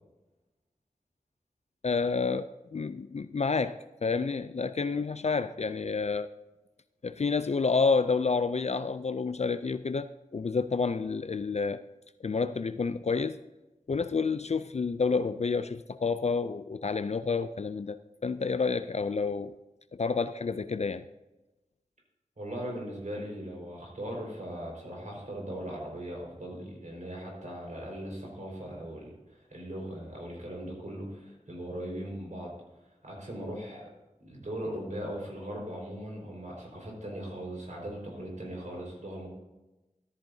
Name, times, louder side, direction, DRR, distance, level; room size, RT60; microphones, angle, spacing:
voice 1, 1.8-6.3 7.0-11.8 12.2-13.4 13.9-19.5 19.9-21.0, left 4 dB, 55° left, 0.4 m, -29 dB
voice 2, 22.4-32.5 33.0-33.9 34.2-39.3, right 1 dB, 65° right, 4.8 m, -39 dB
14.0 x 13.0 x 2.7 m
wide cardioid pair, 50°, 14 cm